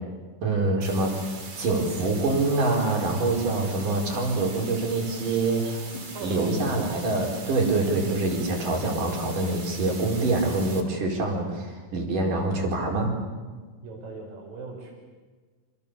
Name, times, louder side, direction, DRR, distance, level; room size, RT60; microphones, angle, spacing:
voice 1, 0.4-1.3 1.6-5.9 6.2-13.1, right 2 dB, 70° right, 1 dB, 6.4 m, -25 dB
sound 1, 0.8-10.8, right 4 dB, 35° right, 3.1 m, -41 dB
voice 2, 6.1-7.0 13.8-14.9, right 3 dB, 85° right, 1 dB, 7.3 m, -39 dB
28.5 x 27.5 x 7.1 m, 1.4 s
omnidirectional pair, 3.9 m